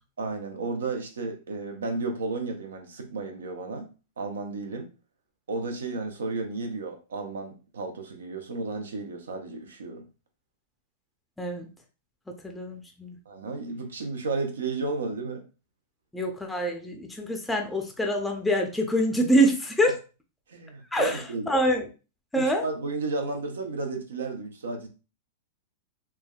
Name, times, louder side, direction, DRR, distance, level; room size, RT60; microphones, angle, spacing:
voice 1, 0.2-3.9 4.2-4.9 5.5-10.0 13.3-15.4 20.5-21.5 22.3-24.9, right 3 dB, 80° right, 0.6 m, -33 dB
voice 2, 12.4-13.1 16.1-20.0 20.9-21.8 22.3-22.6, equal, 5° left, 0.5 m, -25 dB
3.4 x 2.1 x 2.2 m
hypercardioid pair, 115°, 0 cm